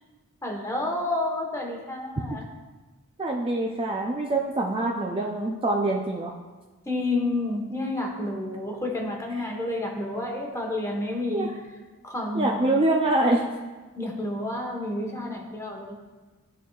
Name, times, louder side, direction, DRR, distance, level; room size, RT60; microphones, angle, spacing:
voice 1, 0.4-2.4 6.9-11.5 12.0-12.6 13.9-15.9, left 2 dB, 15° left, 0 dB, 1.1 m, -30 dB
voice 2, 3.2-6.3 9.4-9.5 11.3-11.5 12.3-13.4, right 2 dB, 25° right, 0 dB, 0.5 m, -25 dB
13.0 x 4.5 x 2.4 m, 1.3 s
head